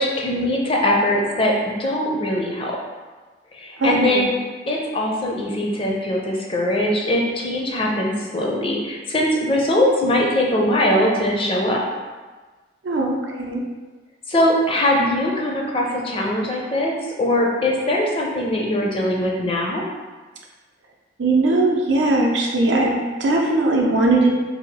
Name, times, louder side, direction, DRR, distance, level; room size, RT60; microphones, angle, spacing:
voice 1, 0.0-1.5 1.8-2.8 3.5-4.3 4.7-11.8 14.3-19.8, left 1 dB, 30° left, -1 dB, 0.4 m, -21 dB
voice 2, 3.8-4.2 12.8-13.6 21.2-24.3, right 2 dB, 80° right, -1 dB, 0.5 m, -19 dB
2.7 x 2.3 x 4.0 m, 1.3 s
head